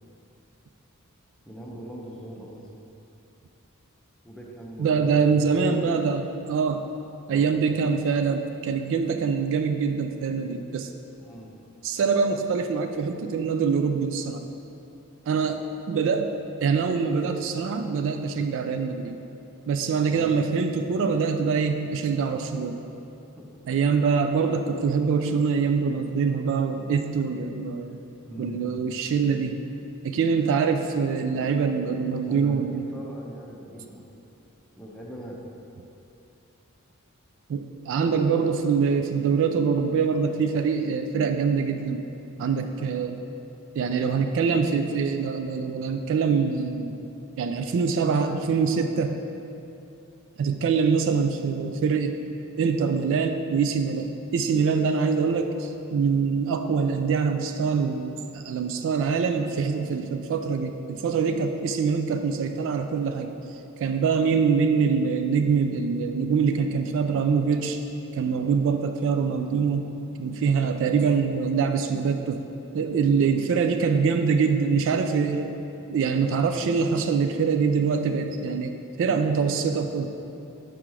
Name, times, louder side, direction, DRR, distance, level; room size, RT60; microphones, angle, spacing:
voice 1, 1.4-2.6 4.2-5.2 5.5-5.8 7.3-7.6 11.2-11.5 20.1-20.4 23.4-23.5 28.2-28.7 32.3-34.1 34.7-35.4 69.3-69.6, right 1 dB, 5° left, -3 dB, 0.7 m, -41 dB
voice 2, 4.8-6.9 7.3-10.9 11.8-14.4 15.3-16.3 16.6-19.2 19.7-22.8 23.7-28.0 28.4-29.6 30.0-32.8 37.5-42.0 42.4-43.2 43.8-47.0 47.4-49.2 50.4-52.2 52.6-63.3 63.8-67.8 68.1-69.9 70.2-72.4 72.7-75.5 75.9-80.1, right 5 dB, 60° right, 7 dB, 0.3 m, -24 dB
5.9 x 4.5 x 4.7 m, 2.8 s
head